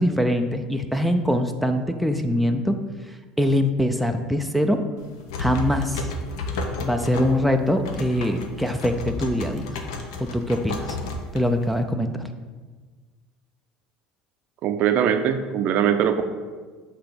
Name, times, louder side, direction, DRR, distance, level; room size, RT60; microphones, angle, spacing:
voice 1, 0.0-2.7 3.1-4.8 5.4-6.1 6.8-9.8 10.2-11.0 11.3-12.3, equal, ahead, 4 dB, 0.4 m, -23 dB
sound 1, 5.0-11.8, left 2 dB, 85° left, 0.7 m, -32 dB
voice 2, 14.6-16.2, right 9 dB, 55° right, 8 dB, 0.5 m, -21 dB
7.9 x 2.9 x 5.1 m, 1.4 s
supercardioid pair, 115°, 3 cm